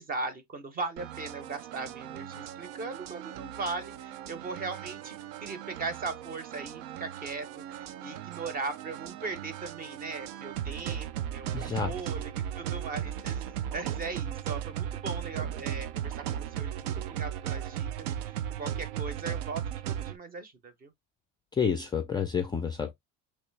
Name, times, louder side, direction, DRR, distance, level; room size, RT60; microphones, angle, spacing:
voice 1, 0.0-20.9, right 3 dB, 25° right, 0.7 m, -39 dB
sound 1, 1.0-20.2, right 10 dB, 80° right, 0.6 m, -36 dB
voice 2, 11.5-11.9 21.5-22.9, left 6 dB, 15° left, 0.3 m, -29 dB
3.2 x 2.9 x 3.2 m
cardioid pair, 140°, 36 cm